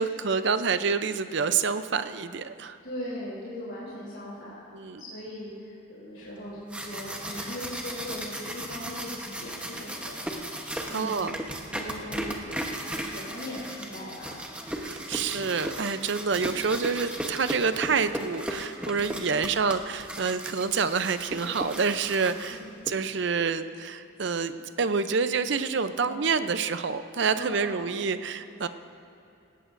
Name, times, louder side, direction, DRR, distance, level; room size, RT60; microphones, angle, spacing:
voice 1, 0.0-2.8 4.7-5.0 10.9-11.4 14.8-22.6 22.9-28.7, right 5 dB, 60° right, 11 dB, 0.5 m, -27 dB
voice 2, 2.8-4.6 5.0-10.2 10.8-11.3 11.7-12.4 12.8-14.4 15.1-15.3 19.0-19.3 22.5-22.7 26.0-26.2 27.3-27.8, left 1 dB, 65° left, -8 dB, 3.4 m, -39 dB
sound 1, 6.5-22.9, right 1 dB, 5° right, 1.0 m, -36 dB
18.5 x 17.0 x 2.6 m, 2.9 s
head